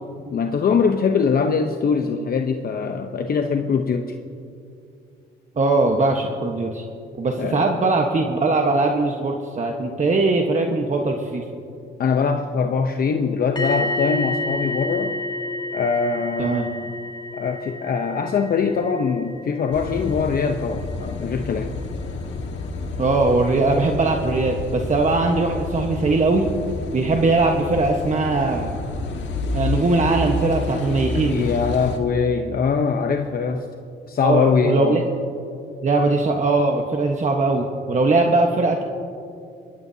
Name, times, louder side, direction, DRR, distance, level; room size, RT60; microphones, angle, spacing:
voice 1, 0.3-4.1 7.4-7.7 12.0-15.2 15.7-16.9 17.3-21.7 31.1-33.7 34.1-35.0, left 5 dB, 50° left, 5 dB, 0.9 m, -22 dB
voice 2, 5.6-6.8 7.2-11.4 16.4-16.6 23.0-26.5 26.9-28.8 29.5-31.5 34.2-35.0 35.8-38.8, right 3 dB, 35° right, 2 dB, 1.3 m, -20 dB
sound 1, 13.6-21.4 21.7-21.9, left 2 dB, 20° left, 1.8 m, -31 dB
Car passing by / Idling / Accelerating revving vroom, 19.7-32.0, left 3 dB, 65° left, 1.7 m, -29 dB
22.5 x 19.5 x 2.8 m, 2.5 s
cardioid pair, 90°, 20 cm